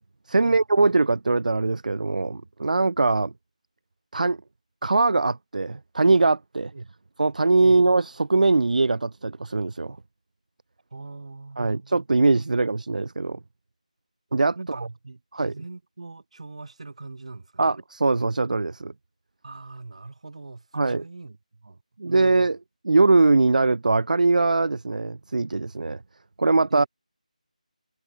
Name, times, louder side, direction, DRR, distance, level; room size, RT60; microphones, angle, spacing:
voice 1, 0.3-3.3 4.1-4.4 4.8-6.7 7.2-10.0 11.6-13.4 14.3-14.5 15.3-15.5 17.6-18.9 20.7-21.0 22.0-22.6 22.8-26.0 26.4-26.8, right 3 dB, 80° right, 0.3 m, -21 dB
voice 2, 10.9-12.0 12.2-12.6 14.5-17.7 19.4-22.5 26.7-26.9, right 3 dB, 55° right, 6.2 m, -41 dB
figure-of-eight pair, 170°, 4 cm